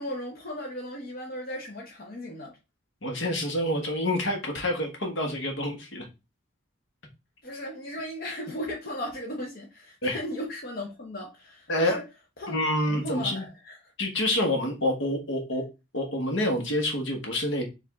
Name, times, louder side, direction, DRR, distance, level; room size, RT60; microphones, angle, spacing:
voice 1, 0.0-2.5 7.4-12.1 12.4-12.5 12.8-13.8, left 1 dB, 45° left, 0.9 m, -36 dB
voice 2, 3.0-6.0 10.0-10.2 11.7-12.0 12.5-13.4 14.0-15.6 15.9-17.6, left 1 dB, 65° left, 1.2 m, -27 dB
4.9 x 2.6 x 3.5 m
head